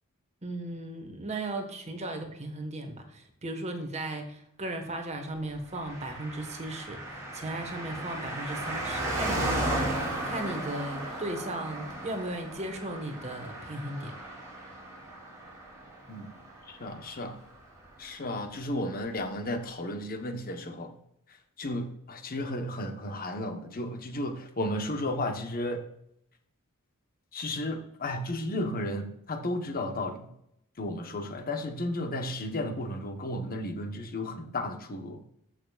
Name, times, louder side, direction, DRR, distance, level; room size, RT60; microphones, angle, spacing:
voice 1, 0.4-7.0 7.3-14.1, right 1 dB, 30° right, 4 dB, 1.4 m, -36 dB
Car passing by, 5.7-17.6 17.8-17.9, right 1 dB, 15° right, 2.9 m, -35 dB
voice 2, 16.7-17.4 18.0-20.9 21.6-25.8 27.3-30.3 30.8-35.2, left 1 dB, 40° left, 6 dB, 1.1 m, -33 dB
14.0 x 6.4 x 2.4 m, 0.75 s
head